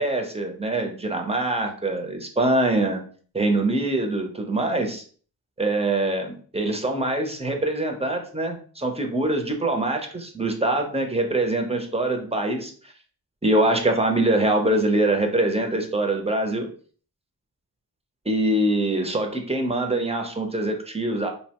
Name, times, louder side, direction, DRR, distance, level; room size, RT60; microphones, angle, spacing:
voice 1, 0.0-3.0 3.3-5.0 5.6-12.7 13.4-16.7 18.3-21.3, right 2 dB, 15° right, 3 dB, 0.6 m, -24 dB
2.7 x 2.1 x 2.9 m, 0.44 s
cardioid pair, 50°, 37 cm